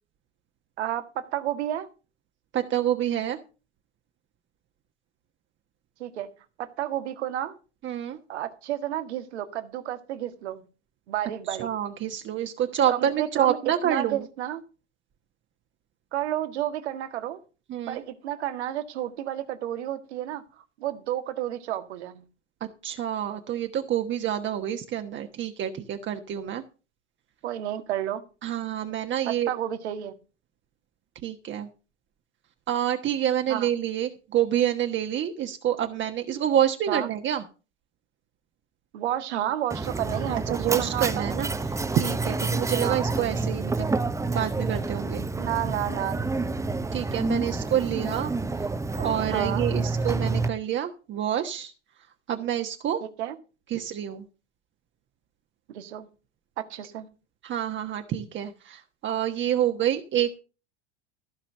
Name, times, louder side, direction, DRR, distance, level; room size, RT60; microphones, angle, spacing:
voice 1, 0.8-1.9 6.0-6.3 6.6-7.6 8.3-10.6 11.1-11.7 12.9-14.6 16.1-17.4 17.9-20.4 20.8-22.2 27.4-28.3 29.3-30.1 33.5-33.7 36.9-37.1 38.9-41.3 42.8-43.1 45.4-46.3 49.3-49.6 53.0-53.3 55.7-56.1 56.6-57.1, right 12 dB, 70° right, 1.8 m, -31 dB
voice 2, 2.5-3.4 7.8-8.2 11.5-14.2 17.7-18.0 22.6-26.6 28.4-29.5 31.2-31.7 32.7-37.4 40.5-41.5 41.9-43.9 44.3-45.2 46.9-48.3 49.0-51.7 52.3-53.0 53.7-54.3 57.4-60.4, right 10 dB, 35° right, 1.3 m, -27 dB
Mechanisms, 39.7-50.5, right 3 dB, 10° right, 0.9 m, -28 dB
15.0 x 5.8 x 6.7 m
hypercardioid pair, 85°, 35 cm